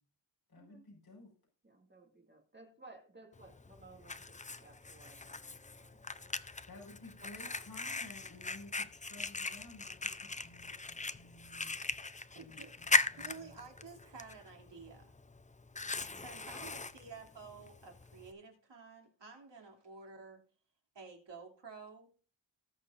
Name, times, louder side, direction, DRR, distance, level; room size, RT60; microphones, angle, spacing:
voice 1, 0.5-1.3 6.7-11.8 12.3-13.7, left 2 dB, 55° left, -2 dB, 5.2 m, -54 dB
voice 2, 1.6-6.3 7.2-7.6 15.8-16.3 16.6-16.7, right 2 dB, 25° right, 2 dB, 2.2 m, -58 dB
Fire, 3.4-18.3, left 3 dB, 15° left, 0.5 m, -39 dB
voice 3, 12.3-12.7 13.1-15.1 16.1-20.5 20.9-22.1, right 4 dB, 70° right, 1 dB, 2.8 m, -51 dB
19.0 x 6.5 x 2.5 m, 0.39 s
wide cardioid pair, 110°, 45 cm